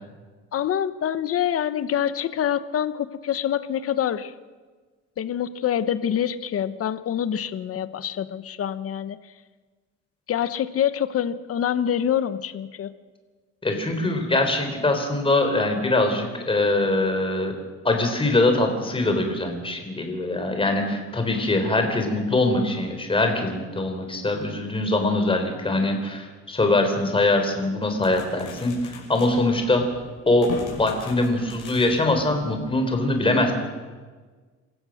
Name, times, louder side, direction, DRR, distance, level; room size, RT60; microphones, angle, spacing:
voice 1, 0.5-4.3 5.2-9.2 10.3-12.9, left 9 dB, 50° left, 13 dB, 1.1 m, -26 dB
voice 2, 13.6-17.6 17.8-29.8 30.3-30.5 30.8-33.5, left 2 dB, 15° left, 5 dB, 3.9 m, -23 dB
sound 1, 27.8-33.0, left 4 dB, 80° left, 6.2 m, -41 dB
27.0 x 15.5 x 6.5 m, 1.4 s
cardioid pair, 130°, 30 cm